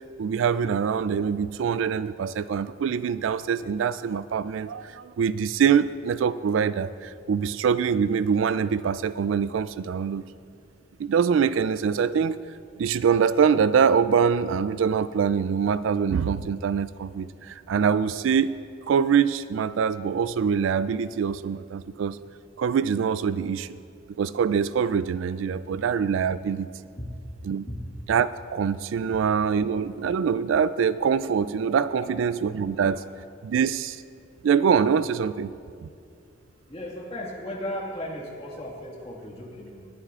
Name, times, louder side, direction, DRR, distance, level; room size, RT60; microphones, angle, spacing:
voice 1, 0.2-10.2 11.0-12.4 12.8-18.5 18.9-22.2 22.6-23.8 24.2-26.7 27.4-27.7 28.1-33.0 33.4-34.0 34.4-35.5 35.8-35.9, right 6 dB, 80° right, 15 dB, 0.3 m, -24 dB
voice 2, 36.7-39.9, left 1 dB, 30° left, -2 dB, 1.8 m, -36 dB
20.0 x 9.9 x 2.5 m, 2.4 s
head